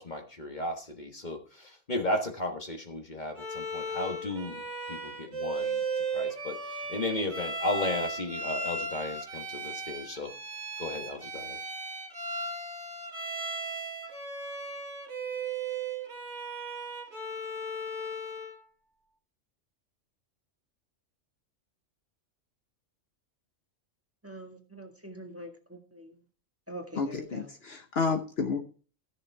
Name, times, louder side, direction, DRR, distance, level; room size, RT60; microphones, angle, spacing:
voice 1, 0.0-4.6 4.9-5.8 6.1-10.3 10.8-11.6, left 2 dB, 40° left, 1.5 m, -34 dB
Bowed string instrument, 3.4-18.6, right 2 dB, 60° right, 2.4 m, -36 dB
voice 2, 24.2-26.2 26.7-27.5, right 1 dB, 10° right, 1.6 m, -44 dB
voice 3, 27.0-28.6, left 4 dB, 60° left, 1.2 m, -30 dB
13.5 x 6.8 x 4.6 m
omnidirectional pair, 1.3 m